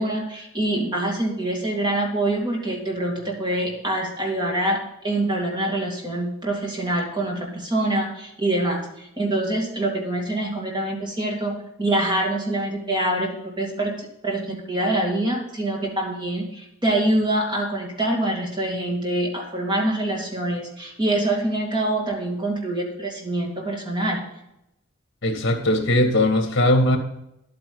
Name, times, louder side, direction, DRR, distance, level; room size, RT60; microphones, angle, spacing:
voice 1, 0.0-4.8 5.0-24.2, right 1 dB, 25° right, -1 dB, 2.5 m, -25 dB
voice 2, 25.2-27.0, left 1 dB, 60° left, 5 dB, 2.0 m, -19 dB
10.5 x 8.9 x 3.9 m, 0.85 s
head